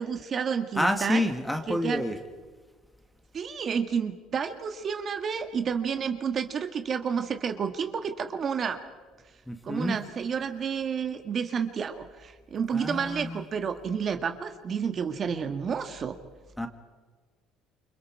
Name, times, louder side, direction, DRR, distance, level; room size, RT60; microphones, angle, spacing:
voice 1, 0.0-1.2 1.7-2.0 3.3-8.8 9.6-16.2, right 6 dB, 40° right, 6 dB, 1.7 m, -30 dB
voice 2, 0.8-2.2 9.5-10.0 12.7-13.4 16.6-16.7, left 1 dB, 5° left, 6 dB, 2.0 m, -28 dB
28.5 x 25.5 x 4.8 m, 1.4 s
cardioid pair, 125°, 0 cm